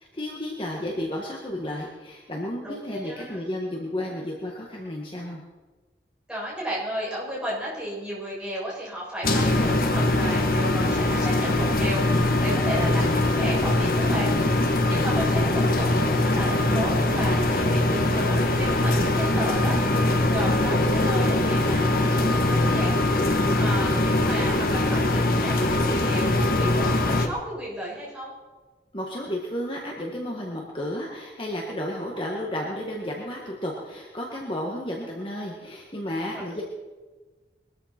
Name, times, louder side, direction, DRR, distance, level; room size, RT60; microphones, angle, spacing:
voice 1, 0.1-5.4 28.9-36.6, left 1 dB, 30° left, -1 dB, 1.6 m, -32 dB
voice 2, 2.6-3.4 6.3-23.0 23.6-28.3 36.6-36.7, equal, 5° right, -8 dB, 7.1 m, -33 dB
sound 1, 9.2-27.3, left 2 dB, 55° left, 1.4 m, -22 dB
22.0 x 13.5 x 4.4 m, 1.3 s
head